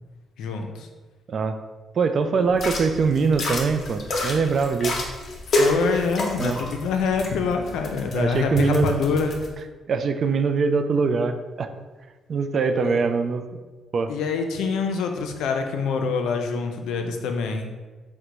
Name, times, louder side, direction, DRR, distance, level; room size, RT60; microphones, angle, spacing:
voice 1, 0.4-0.9 5.6-9.3 12.8-13.0 14.1-17.7, left 5 dB, 85° left, 4 dB, 0.4 m, -25 dB
voice 2, 2.0-4.9 6.4-6.6 8.1-9.0 9.9-11.7 12.3-13.4 13.9-14.1, right 5 dB, 50° right, 8 dB, 0.3 m, -23 dB
sound 1, 2.5-9.5, left 1 dB, 50° left, 0.8 m, -29 dB
3.8 x 2.2 x 4.5 m, 1.3 s
cardioid pair, 90°, 0 cm